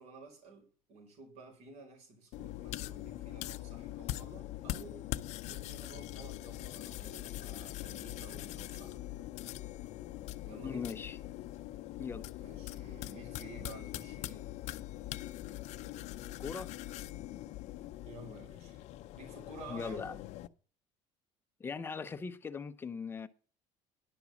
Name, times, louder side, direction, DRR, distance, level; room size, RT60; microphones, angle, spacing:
voice 1, 0.0-5.0 5.4-9.3 10.5-10.9 12.4-14.5 18.1-18.8 19.1-20.2, right 3 dB, 60° right, 5.3 m, -52 dB
sound 1, 2.3-20.5, left 15 dB, 60° left, 0.6 m, -42 dB
voice 2, 10.6-11.2 12.0-12.3 16.4-16.7 19.7-20.2 21.6-23.3, left 5 dB, 15° left, 0.7 m, -40 dB
11.0 x 6.1 x 7.1 m
cardioid pair, 160°, 13 cm